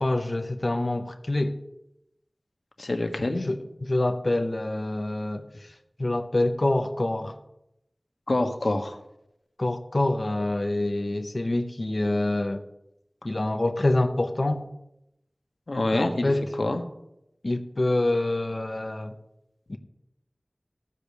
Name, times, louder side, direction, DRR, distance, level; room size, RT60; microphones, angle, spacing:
voice 1, 0.0-1.5 3.4-7.4 9.6-12.6 13.2-14.7 15.9-16.4 17.4-19.2 19.7-19.8, left 2 dB, 50° left, 6 dB, 0.8 m, -26 dB
voice 2, 2.8-3.5 8.3-9.0 15.7-16.3 16.6-16.8, left 2 dB, 75° left, 5 dB, 1.3 m, -26 dB
15.0 x 5.1 x 6.9 m, 0.85 s
wide cardioid pair, 50°, 0 cm